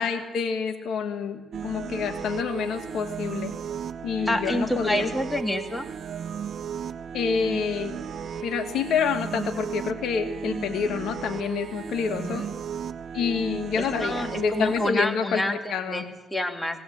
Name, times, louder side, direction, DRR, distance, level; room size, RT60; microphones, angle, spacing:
voice 1, 0.0-3.5 4.0-5.1 7.1-8.0 8.4-12.4 13.1-15.4 15.7-16.1, left 6 dB, 75° left, 7 dB, 2.2 m, -28 dB
sound 1, 1.5-14.9, right 7 dB, 60° right, 1.2 m, -35 dB
voice 2, 4.3-5.9 12.1-12.5 13.8-16.8, left 1 dB, 10° left, 6 dB, 2.3 m, -28 dB
19.5 x 18.5 x 8.7 m, 1.1 s
cardioid pair, 90°, 0 cm